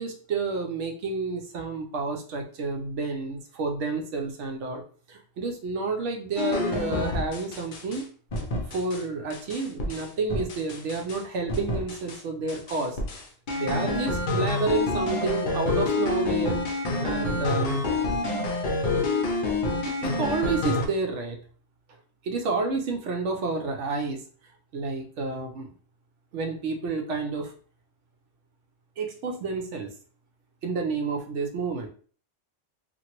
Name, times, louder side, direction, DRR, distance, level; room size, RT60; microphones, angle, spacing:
voice 1, 0.0-4.8 5.1-8.0 8.7-13.0 13.5-16.5 17.0-17.8 19.8-21.4 22.2-24.2 24.7-25.7 26.3-27.5 29.0-29.9 30.6-31.9, right 3 dB, 70° right, 3 dB, 0.9 m, -30 dB
sound 1, 6.4-8.0 8.3-9.0 9.3-11.2 11.5-12.2 12.5-20.9, left 2 dB, 50° left, 0.6 m, -28 dB
2.9 x 2.5 x 2.9 m, 0.43 s
omnidirectional pair, 1.3 m